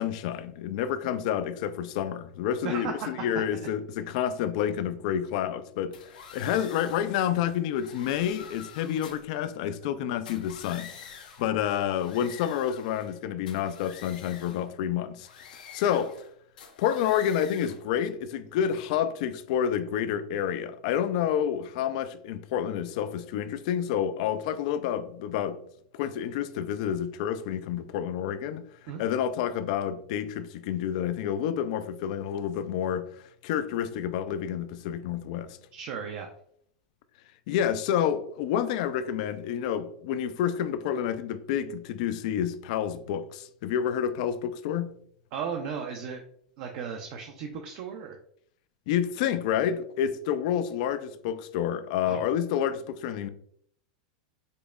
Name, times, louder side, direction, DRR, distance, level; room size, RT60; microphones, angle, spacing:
voice 1, 0.0-11.1 11.4-15.3 15.5-16.1 16.8-25.6 25.9-28.7 29.0-35.6 37.5-44.9 48.9-53.3, left 9 dB, 60° left, 0.3 m, -29 dB
voice 2, 2.6-3.1 28.9-29.0 35.7-36.3 45.3-46.2 46.6-48.2 52.0-52.2, right 6 dB, 55° right, 0.5 m, -35 dB
sound 1, 5.9-7.2 7.7-9.3 10.1-11.5 11.9-13.2 13.5-14.7 15.2-16.3 16.6-17.8, left 6 dB, 85° left, 0.7 m, -47 dB
5.1 x 2.0 x 2.4 m
supercardioid pair, 125°, 4 cm